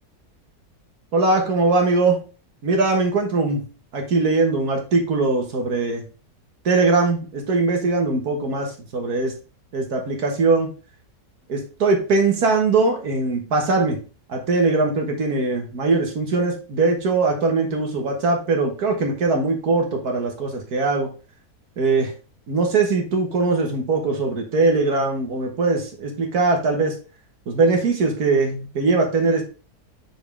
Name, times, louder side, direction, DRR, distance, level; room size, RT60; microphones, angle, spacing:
voice 1, 1.1-2.2 2.6-3.6 3.9-6.0 6.7-9.3 9.7-10.7 11.5-14.0 14.3-21.1 21.8-22.1 22.5-27.0 27.5-29.4, right 3 dB, 75° right, 2 dB, 1.8 m, -21 dB
6.2 x 5.2 x 3.4 m, 0.34 s
omnidirectional pair, 1.7 m